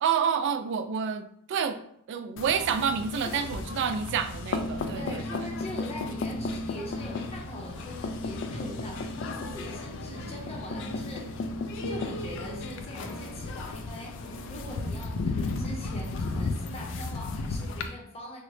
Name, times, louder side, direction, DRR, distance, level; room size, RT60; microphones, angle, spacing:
voice 1, 0.0-1.8 2.1-5.4, right 7 dB, 55° right, 9 dB, 0.3 m, -29 dB
sound 1, 2.4-17.9, left 3 dB, 60° left, 0.3 m, -34 dB
voice 2, 4.9-18.4, left 1 dB, 30° left, 0 dB, 0.7 m, -42 dB
sound 2, 8.2-17.2, equal, 80° left, 1.2 m, -45 dB
3.7 x 2.1 x 3.1 m, 0.69 s
head